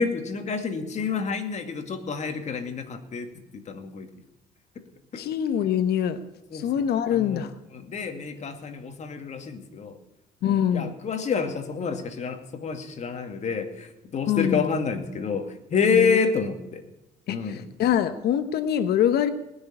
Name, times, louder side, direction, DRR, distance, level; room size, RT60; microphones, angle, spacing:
voice 1, 0.0-3.3 3.5-4.1 5.1-5.2 6.5-6.8 7.1-7.5 7.8-9.9 10.4-16.8 17.3-17.6, left 5 dB, 45° left, 6 dB, 2.2 m, -28 dB
voice 2, 5.2-6.2 6.5-7.5 10.4-10.9 14.3-14.6 15.9-16.2 17.3-19.3, left 9 dB, 70° left, 11 dB, 1.1 m, -24 dB
19.5 x 6.7 x 9.9 m, 0.95 s
cardioid pair, 110°, 17 cm